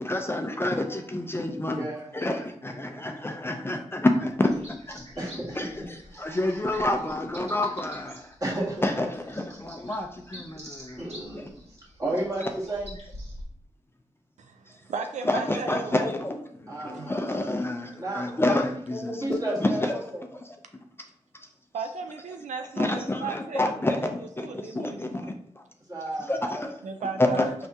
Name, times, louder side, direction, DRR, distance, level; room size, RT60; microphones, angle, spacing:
voice 1, 0.0-1.9 2.1-5.0 5.6-8.3 8.8-11.5 15.2-20.0 20.3-20.4 22.8-25.6 26.3-26.8 27.2-27.5, left 1 dB, 20° left, 3 dB, 0.5 m, -28 dB
voice 2, 1.7-2.1 2.9-3.0 5.2-6.5 8.4-8.8 9.9-10.0 11.0-11.5 12.0-12.9 16.7-17.2 18.0-18.2 18.9-20.2 25.8-26.3, right 1 dB, 30° right, -5 dB, 1.7 m, -33 dB
sound 1, 4.5-13.4, equal, 60° right, 1.4 m, -47 dB
voice 3, 14.4-16.0 16.9-17.1 21.7-24.1 24.4-25.2 26.8-27.5, right 5 dB, 85° right, 6 dB, 0.4 m, -36 dB
4.7 x 3.4 x 2.7 m, 0.63 s
cardioid pair, 55°, 12 cm